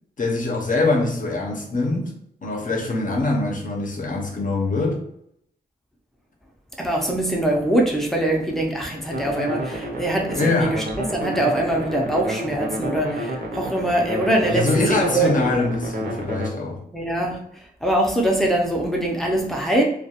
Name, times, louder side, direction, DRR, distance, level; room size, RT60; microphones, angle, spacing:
voice 1, 0.2-2.1 2.4-5.0 10.3-10.8 14.5-16.8, left 2 dB, 50° left, 0.6 m, -23 dB
voice 2, 6.8-10.8 11.1-15.4 16.9-17.4 17.8-19.8, right 1 dB, ahead, 0.5 m, -23 dB
sound 1, 9.1-16.5, right 1 dB, 65° right, 0.7 m, -30 dB
2.2 x 2.2 x 2.8 m
wide cardioid pair, 95°, 17 cm